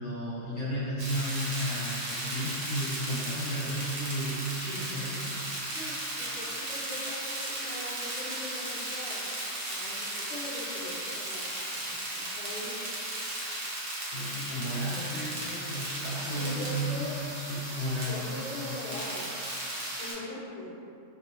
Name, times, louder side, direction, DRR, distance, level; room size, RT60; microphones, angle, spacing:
voice 1, 0.0-5.3 14.1-18.2, equal, 90° left, -11 dB, 1.5 m, -33 dB
sound 1, 1.0-20.1, right 1 dB, 55° right, 1.1 m, -36 dB
voice 2, 5.7-9.3 9.7-12.7 14.8-15.2 16.3-17.2 18.1-19.3 20.0-20.7, left 1 dB, 45° left, -9 dB, 1.0 m, -41 dB
3.3 x 2.7 x 3.0 m, 2.7 s
omnidirectional pair, 1.3 m